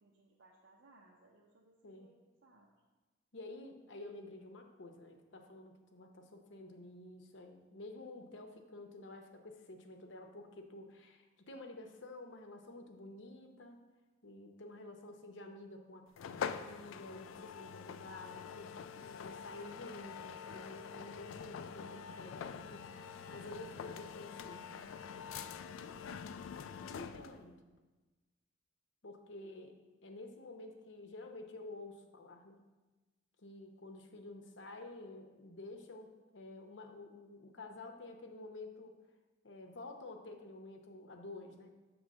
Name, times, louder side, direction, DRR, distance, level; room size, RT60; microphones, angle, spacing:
voice 1, 0.0-2.7, right 2 dB, 65° right, -3 dB, 0.7 m, -65 dB
voice 2, 3.3-13.8 14.2-18.8 19.2-24.7 26.9-27.6 29.0-29.8 30.0-32.6 33.4-39.0 39.4-41.7, left 2 dB, 65° left, 5 dB, 0.7 m, -50 dB
sound 1, 16.2-27.4, left 7 dB, 85° left, 0.3 m, -45 dB
7.5 x 3.1 x 6.2 m, 1.2 s
head